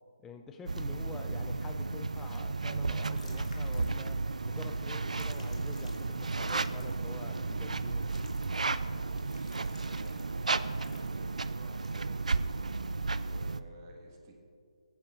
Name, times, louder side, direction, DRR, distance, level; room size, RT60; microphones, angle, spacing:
voice 1, 0.2-8.3, left 4 dB, 10° left, 5 dB, 0.4 m, -47 dB
sound 1, 0.7-13.6, right 3 dB, 85° right, 0.4 m, -33 dB
sound 2, 3.2-4.4 4.9-7.1 8.0-12.1, left 2 dB, 75° left, 1.6 m, -55 dB
voice 2, 9.1-12.4 13.1-14.3, right 2 dB, 30° right, 0 dB, 1.6 m, -54 dB
18.5 x 8.9 x 2.5 m, 2.3 s
figure-of-eight pair, 155°, 4 cm